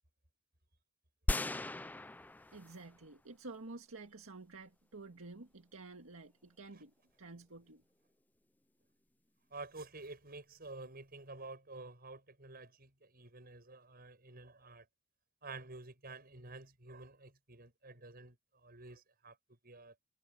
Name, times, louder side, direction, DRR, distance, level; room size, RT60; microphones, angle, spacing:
sound 1, 1.3-3.0 3.5-3.6, left 1 dB, 10° left, 0.3 m, -37 dB
voice 1, 2.5-7.8, right 3 dB, 85° right, 1.8 m, -51 dB
voice 2, 9.5-14.9 15.4-19.4 19.6-19.9, right 3 dB, 45° right, 7.5 m, -50 dB
head